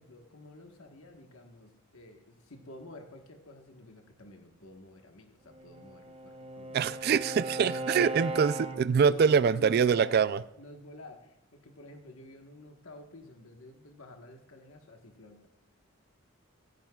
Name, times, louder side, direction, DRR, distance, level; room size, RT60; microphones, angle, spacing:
voice 1, 0.0-7.0 7.7-8.2 9.0-10.3 10.6-15.5, left 2 dB, 80° left, 4 dB, 1.3 m, -50 dB
Bowed string instrument, 5.5-9.1, right 1 dB, 30° right, 0.8 m, -38 dB
voice 2, 6.7-10.4, right 6 dB, 50° right, 15 dB, 0.3 m, -24 dB
15.0 x 15.0 x 2.3 m, 0.83 s
head